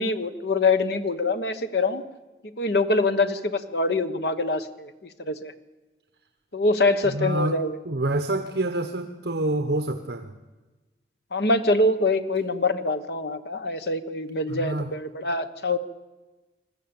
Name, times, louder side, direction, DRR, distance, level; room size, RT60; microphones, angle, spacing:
voice 1, 0.0-2.0 2.6-4.9 5.2-5.5 6.5-7.8 11.3-15.8, left 2 dB, 65° left, 10 dB, 1.2 m, -24 dB
voice 2, 7.0-7.6 7.8-10.3 14.5-14.9, right 2 dB, 70° right, 7 dB, 1.1 m, -27 dB
20.5 x 14.0 x 8.9 m, 1.2 s
head